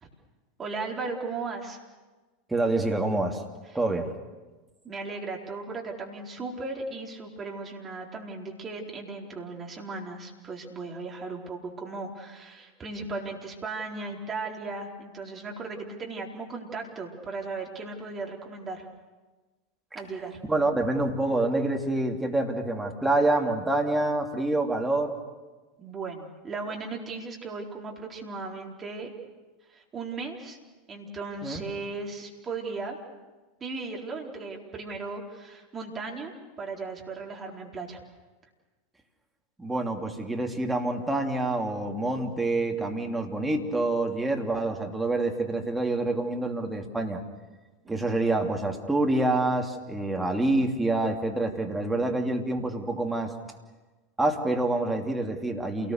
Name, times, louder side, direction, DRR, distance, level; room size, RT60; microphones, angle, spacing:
voice 1, 0.6-1.8 4.8-18.9 19.9-20.4 25.8-29.1 29.7-30.6 30.9-33.0 33.6-38.0 47.8-48.1, right 3 dB, 25° right, 0 dB, 4.3 m, -36 dB
voice 2, 2.5-3.4 3.7-4.1 20.5-25.1 31.4-31.6 39.6-47.2 47.9-53.3 54.2-55.9, right 2 dB, 10° right, 1 dB, 2.9 m, -27 dB
28.0 x 19.5 x 6.7 m, 1.2 s
figure-of-eight pair, 85°, 0 cm